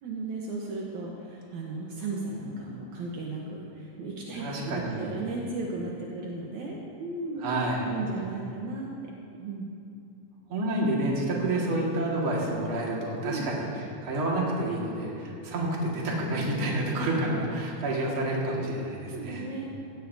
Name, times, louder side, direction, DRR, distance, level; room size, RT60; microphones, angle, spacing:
voice 1, 0.0-7.4 7.9-8.9 9.3-9.8 13.2-13.5 19.1-19.7, right 3 dB, 70° right, -3 dB, 2.4 m, -35 dB
voice 2, 4.3-5.2 7.4-7.9 10.5-19.5, right 1 dB, 45° right, -3 dB, 2.5 m, -29 dB
16.5 x 14.0 x 2.7 m, 2.7 s
omnidirectional pair, 3.6 m